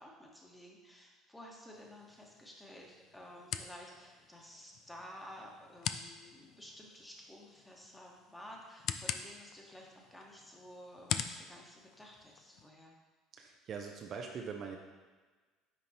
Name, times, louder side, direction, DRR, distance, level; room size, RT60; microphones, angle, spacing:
voice 1, 0.0-13.0, equal, 10° left, -1 dB, 1.4 m, -53 dB
sound 1, 1.7-12.7, left 9 dB, 55° left, 0.3 m, -44 dB
voice 2, 13.4-14.8, right 6 dB, 45° right, 2 dB, 0.6 m, -42 dB
10.0 x 4.0 x 2.9 m, 1.3 s
figure-of-eight pair, 60°, 0 cm